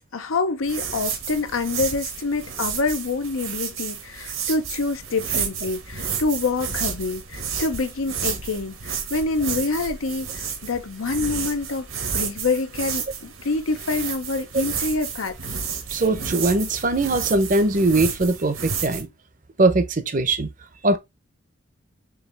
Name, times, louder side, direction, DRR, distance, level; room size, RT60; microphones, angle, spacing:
voice 1, 0.0-11.9 12.1-15.3, left 3 dB, 85° left, 0.7 m, -26 dB
sound 1, 0.6-19.0, right 6 dB, 80° right, 1.3 m, -31 dB
voice 2, 15.9-19.1 19.6-20.5 20.8-21.0, right 2 dB, 40° right, 0.6 m, -21 dB
4.6 x 3.2 x 3.3 m
head